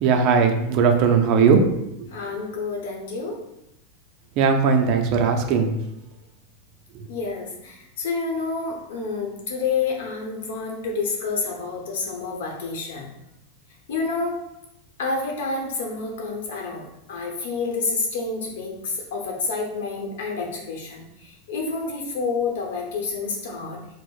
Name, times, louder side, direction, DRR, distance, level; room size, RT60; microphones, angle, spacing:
voice 1, 0.0-1.6 4.4-5.7, right 6 dB, 40° right, 4 dB, 0.4 m, -18 dB
voice 2, 2.1-3.4 7.0-13.1 13.9-14.4 15.0-23.9, left 4 dB, 75° left, 0 dB, 0.8 m, -29 dB
4.4 x 2.0 x 2.3 m, 0.84 s
supercardioid pair, 160°, 0 cm